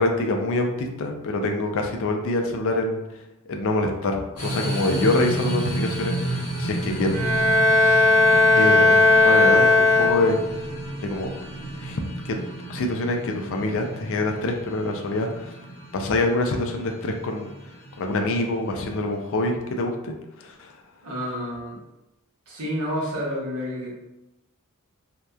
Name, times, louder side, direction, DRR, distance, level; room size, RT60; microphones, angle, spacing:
voice 1, 0.0-3.0 3.5-7.2 8.5-8.9 9.2-10.4 11.0-11.3 11.8-12.4 12.7-15.5 15.9-17.5 18.0-20.7, left 2 dB, 65° left, 3 dB, 0.4 m, -25 dB
sound 1, 4.4-19.4, right 1 dB, 85° left, 1.1 m, -32 dB
Bowed string instrument, 7.1-10.6, left 2 dB, 35° right, 0.8 m, -17 dB
voice 2, 21.0-21.8 22.5-23.9, equal, 90° right, -5 dB, 0.9 m, -30 dB
2.8 x 2.1 x 2.3 m, 0.95 s
head